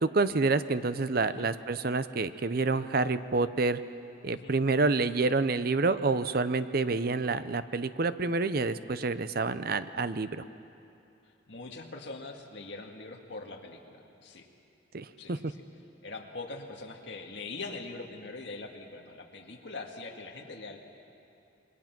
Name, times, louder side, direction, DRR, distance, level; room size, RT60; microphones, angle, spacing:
voice 1, 0.0-3.8 4.2-10.4 14.9-15.5, right 3 dB, 50° right, 13 dB, 0.7 m, -28 dB
voice 2, 11.5-14.5 15.2-15.4 16.0-20.8, left 3 dB, 65° left, 2 dB, 2.0 m, -42 dB
27.0 x 22.0 x 6.0 m, 2.6 s
head